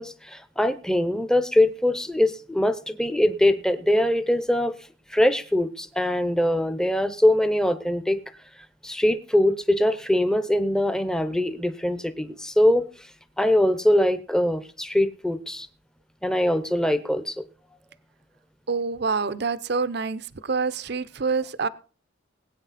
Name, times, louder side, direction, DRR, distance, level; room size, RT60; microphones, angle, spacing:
voice 1, 0.0-4.8 5.1-8.2 8.8-13.1 13.4-15.7 16.2-17.4, left 1 dB, 5° left, 12 dB, 0.7 m, -22 dB
voice 2, 18.7-21.7, right 4 dB, 55° right, 15 dB, 0.6 m, -26 dB
20.0 x 8.8 x 4.1 m, 0.37 s
head